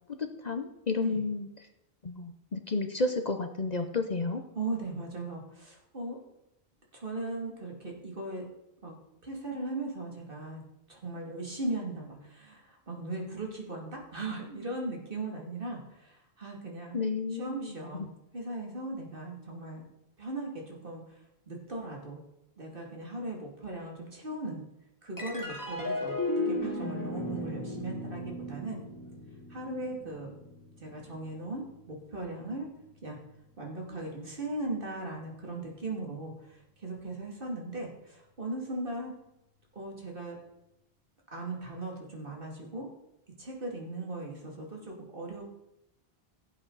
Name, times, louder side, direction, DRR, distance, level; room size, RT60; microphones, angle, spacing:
voice 1, 0.2-1.5 2.0-4.4 16.9-18.1, left 3 dB, 45° left, 6 dB, 0.9 m, -32 dB
voice 2, 4.5-6.2 6.9-8.4 8.8-8.9 9.2-10.6 10.9-17.0 17.4-19.8 20.2-21.2 21.5-22.2 22.6-24.6 25.0-26.2 26.5-28.8 29.5-30.3 30.8-32.7 33.0-33.2 33.6-39.1 39.7-40.4 41.3-42.9 43.4-45.4, right 2 dB, 55° right, 0 dB, 2.7 m, -38 dB
sound 1, 25.2-31.8, left 1 dB, 20° left, 2.1 m, -36 dB
16.0 x 8.3 x 4.0 m, 0.86 s
omnidirectional pair, 1.1 m